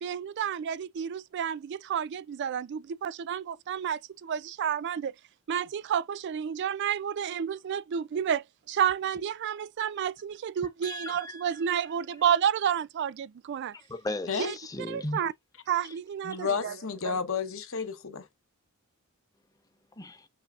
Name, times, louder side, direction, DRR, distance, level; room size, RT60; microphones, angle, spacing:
voice 1, 0.0-5.1 5.5-13.7 14.4-14.5 14.9-15.3 15.7-16.7 17.0-17.2, right 8 dB, 55° right, 0.3 m, -30 dB
voice 2, 10.8-11.7 13.9-15.2 15.8-15.9 16.3-16.4 20.0-20.3, left 2 dB, 15° left, 0.7 m, -37 dB
voice 3, 16.2-18.3, left 5 dB, 65° left, 0.9 m, -31 dB
6.5 x 3.3 x 2.3 m
head